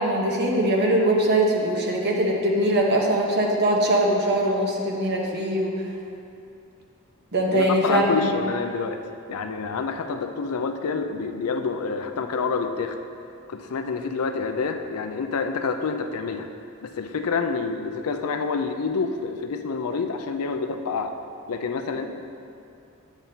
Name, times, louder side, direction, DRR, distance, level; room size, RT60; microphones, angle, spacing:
voice 1, 0.0-5.7 7.3-8.3, right 1 dB, 50° right, -1 dB, 0.9 m, -22 dB
voice 2, 7.5-9.0 9.3-13.0 13.5-16.5 16.8-21.1 21.5-22.1, left 4 dB, 80° left, 6 dB, 0.5 m, -27 dB
8.7 x 7.1 x 2.8 m, 2.5 s
head